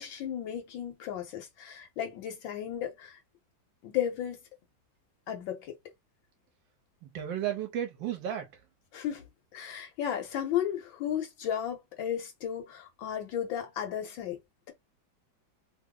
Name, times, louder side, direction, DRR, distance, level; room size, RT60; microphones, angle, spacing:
voice 1, 0.0-3.2 3.8-4.4 5.3-5.8 8.9-9.2 9.5-14.4, left 10 dB, 75° left, 1.5 m, -34 dB
voice 2, 7.0-8.6, right 10 dB, 75° right, 1.3 m, -34 dB
3.4 x 2.0 x 3.6 m
omnidirectional pair, 2.2 m